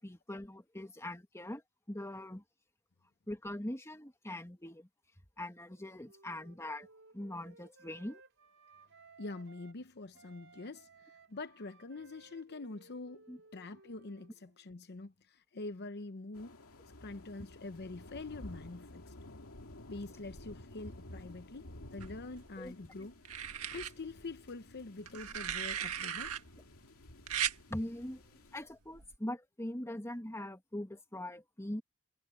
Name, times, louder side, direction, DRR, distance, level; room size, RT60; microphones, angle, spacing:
voice 1, 0.0-1.6 1.9-2.4 3.3-4.9 5.4-6.9 7.1-8.2 13.3-13.4 22.6-22.7 27.7-28.2 28.5-31.8, left 1 dB, 15° left, 2.0 m, -42 dB
Wind instrument woodwind instrument, 5.4-9.8 10.1-14.7, right 3 dB, 65° right, 6.5 m, -61 dB
voice 2, 9.2-13.2 13.5-16.6 17.0-19.1 19.9-23.2 23.7-26.3, left 3 dB, 50° left, 0.8 m, -45 dB
sound 1, 16.3-28.6, left 1 dB, 75° left, 2.5 m, -53 dB
sound 2, 22.0-22.7 23.2-23.9 25.1-26.4 27.3-27.6 28.9-29.2, right 9 dB, 80° right, 1.8 m, -37 dB
head